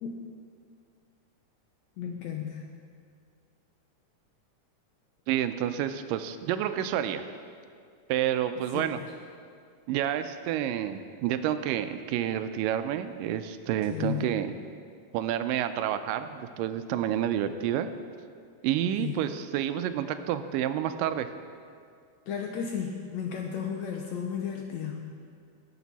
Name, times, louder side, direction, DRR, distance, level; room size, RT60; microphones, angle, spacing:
voice 1, 2.0-2.7 8.7-9.0 13.9-14.3 19.0-19.2 22.3-25.2, left 8 dB, 80° left, 2 dB, 1.7 m, -34 dB
voice 2, 5.3-7.2 8.1-9.0 9.9-14.5 15.1-17.9 18.6-21.3, right 10 dB, 85° right, 10 dB, 2.2 m, -29 dB
17.0 x 7.3 x 4.1 m, 2.2 s
omnidirectional pair, 3.8 m